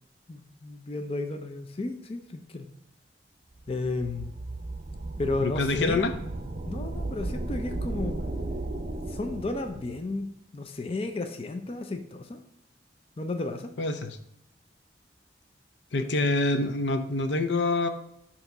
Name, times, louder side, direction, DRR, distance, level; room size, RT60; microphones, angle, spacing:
voice 1, 0.3-2.7 3.7-4.3 5.2-6.0 6.7-8.2 8.9-10.3 10.5-12.4 13.2-13.7, left 2 dB, 35° left, 6 dB, 0.5 m, -33 dB
sound 1, 3.6-10.1, right 2 dB, 40° right, 0.6 m, -35 dB
voice 2, 5.4-6.1 13.8-14.2 15.9-17.9, left 2 dB, 85° left, 8 dB, 0.6 m, -26 dB
6.7 x 2.9 x 5.8 m, 0.80 s
head